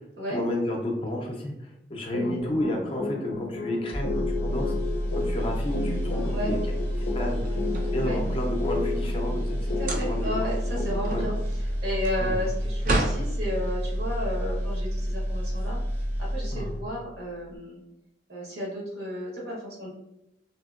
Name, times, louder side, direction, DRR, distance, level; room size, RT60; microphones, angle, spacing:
voice 1, 0.3-4.7 5.1-6.6 7.0-7.6 7.9-9.5 9.9-10.3 11.1-11.2 12.2-12.3 16.5-16.7, left 1 dB, 30° left, 1 dB, 0.4 m, -31 dB
sound 1, 2.1-11.4, left 3 dB, 85° left, 0.4 m, -33 dB
sound 2, 3.9-17.0 17.4-17.6, equal, 85° right, 1.3 m, -29 dB
sound 3, 7.4-8.5 9.7-10.4 10.8-13.3, right 1 dB, 45° right, 0.4 m, -31 dB
voice 2, 9.6-15.8 16.2-17.8 18.3-19.9, equal, 65° right, -3 dB, 1.0 m, -33 dB
2.8 x 2.6 x 2.4 m, 0.88 s
head